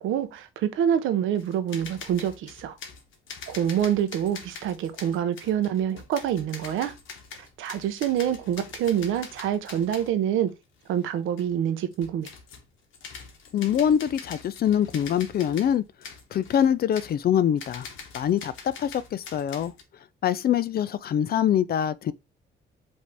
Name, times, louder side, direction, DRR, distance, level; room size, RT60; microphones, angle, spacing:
voice 1, 0.0-2.8 3.5-6.9 7.6-10.5 10.9-12.3, right 9 dB, 85° right, 0.8 m, -26 dB
sound 1, 1.4-10.2 10.5-10.6 10.8-11.1 11.4-11.5 11.9-12.7 12.9-19.8, left 5 dB, 80° left, 1.1 m, -44 dB
voice 2, 13.5-15.8 16.3-17.9 18.1-19.7 20.2-22.1, left 9 dB, 50° left, 0.4 m, -24 dB
5.2 x 2.7 x 3.3 m
cardioid pair, 90°, 20 cm